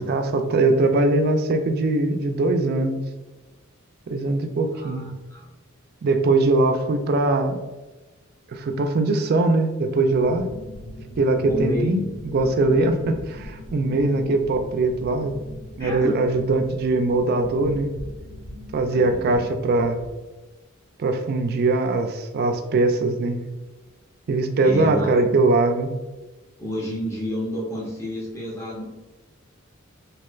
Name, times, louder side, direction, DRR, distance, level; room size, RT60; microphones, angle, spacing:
voice 1, 0.0-3.0 4.1-5.1 6.0-7.6 8.5-10.5 11.2-15.3 15.8-17.9 18.7-20.0 21.0-23.4 24.3-25.9, right 2 dB, 50° right, 6 dB, 0.3 m, -21 dB
voice 2, 4.7-5.5 11.5-12.0 12.4-12.5 15.8-16.2 18.9-19.4 24.6-25.3 26.6-28.8, equal, 15° left, -5 dB, 0.7 m, -30 dB
sound 1, 10.1-20.1, left 1 dB, 90° left, 0.7 m, -40 dB
3.1 x 2.8 x 2.3 m, 1.1 s
head